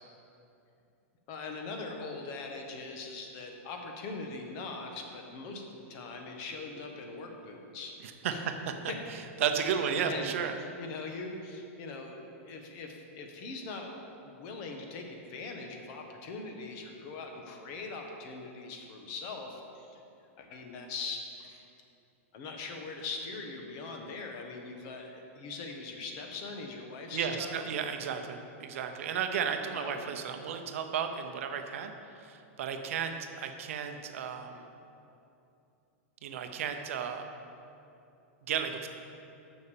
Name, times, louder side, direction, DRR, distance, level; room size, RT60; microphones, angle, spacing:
voice 1, 1.3-7.9 8.3-8.4 8.9-9.0 9.7-10.3 10.8-12.2 12.5-13.9 14.2-20.0 20.4-21.6 22.3-27.7 29.7-30.1, left 3 dB, 45° left, 3 dB, 1.3 m, -41 dB
voice 2, 8.0-8.7 9.4-10.6 27.1-34.7 36.2-37.3 38.5-38.9, right 7 dB, 70° right, 6 dB, 0.8 m, -33 dB
6.8 x 6.4 x 7.0 m, 2.7 s
supercardioid pair, 145°, 8 cm